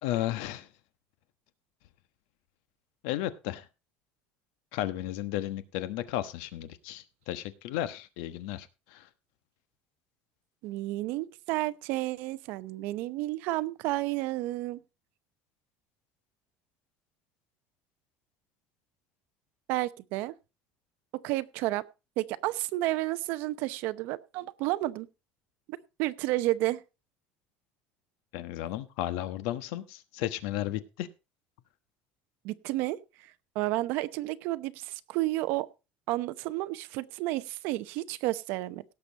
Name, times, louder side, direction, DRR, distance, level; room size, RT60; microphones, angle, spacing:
voice 1, 0.0-0.7 3.0-3.7 4.7-9.1 28.3-31.1, left 13 dB, 75° left, 12 dB, 1.2 m, -34 dB
voice 2, 10.6-14.8 19.7-20.3 21.1-21.8 22.2-25.1 25.7-26.8 32.4-33.0 33.5-35.7 36.1-38.8, right 18 dB, 60° right, 14 dB, 0.8 m, -31 dB
17.5 x 6.9 x 4.0 m, 0.29 s
cardioid pair, 170°, 4 cm